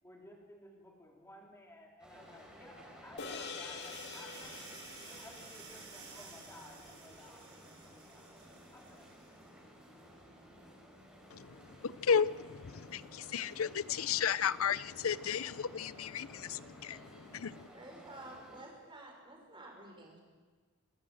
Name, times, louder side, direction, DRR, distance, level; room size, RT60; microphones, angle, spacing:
voice 1, 0.0-4.6 5.0-7.5 7.8-8.3 8.7-9.1, left 1 dB, 10° left, -1 dB, 4.2 m, -56 dB
sound 1, 2.0-18.6, equal, 5° right, 5.8 m, -56 dB
sound 2, 3.2-7.8, left 4 dB, 55° left, 2.1 m, -47 dB
sound 3, 3.8-9.5, right 5 dB, 65° right, 6.3 m, -53 dB
voice 2, 11.8-17.7, left 7 dB, 70° left, 17 dB, 0.6 m, -34 dB
voice 3, 17.7-20.2, right 2 dB, 25° right, 0 dB, 5.9 m, -51 dB
27.5 x 14.0 x 7.8 m, 1.4 s
head